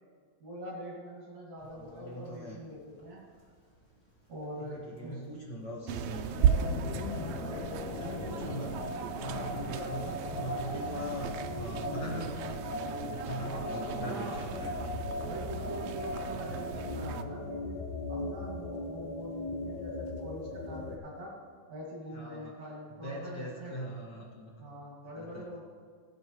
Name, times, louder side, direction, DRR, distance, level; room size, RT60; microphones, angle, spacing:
voice 1, 0.4-3.3 4.3-5.2 6.9-8.7 13.5-14.4 15.2-17.8 18.1-21.3 21.7-23.8 24.6-25.6, equal, 65° right, -7 dB, 3.2 m, -43 dB
sound 1, 1.6-21.3, equal, 25° left, 2.1 m, -54 dB
voice 2, 1.7-2.6 4.6-6.4 7.9-8.7 9.2-12.4 13.1-14.9 22.1-22.5 23.0-24.6 25.2-25.5, equal, 45° left, -4 dB, 1.6 m, -41 dB
sound 2, 5.9-17.2, right 8 dB, 90° right, 1.4 m, -35 dB
sound 3, 6.3-21.0, left 2 dB, 75° left, 2.2 m, -38 dB
16.5 x 8.2 x 3.0 m, 2.1 s
omnidirectional pair, 3.4 m